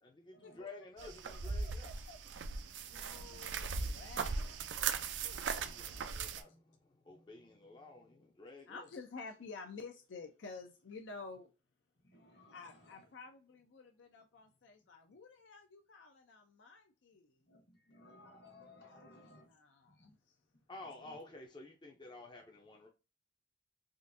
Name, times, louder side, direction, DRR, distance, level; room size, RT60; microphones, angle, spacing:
voice 1, 0.0-1.9 5.4-8.9 20.7-22.9, left 2 dB, 25° left, 0.5 m, -52 dB
sound 1, 1.0-6.4, right 5 dB, 75° right, 0.4 m, -39 dB
voice 2, 1.6-2.2 2.9-5.0 5.2-6.1 8.7-11.5 12.5-17.7 18.9-20.4, left 4 dB, 80° left, 0.5 m, -52 dB
voice 3, 2.9-3.4 12.0-12.6 17.5-19.5, left 2 dB, 60° left, 1.1 m, -60 dB
3.7 x 2.5 x 2.5 m
head